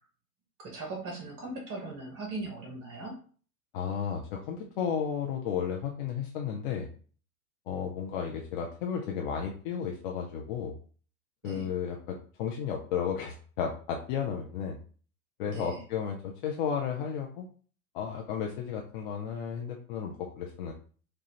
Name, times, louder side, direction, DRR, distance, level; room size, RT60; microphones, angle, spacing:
voice 1, 0.6-3.1 11.4-11.7 15.5-15.8, right 2 dB, 30° right, 0 dB, 1.1 m, -39 dB
voice 2, 3.7-6.9 7.7-10.7 11.4-14.8 15.4-17.5 17.9-20.7, left 7 dB, 35° left, 1 dB, 0.5 m, -33 dB
4.7 x 2.4 x 2.9 m, 0.42 s
figure-of-eight pair, 100°, 45 cm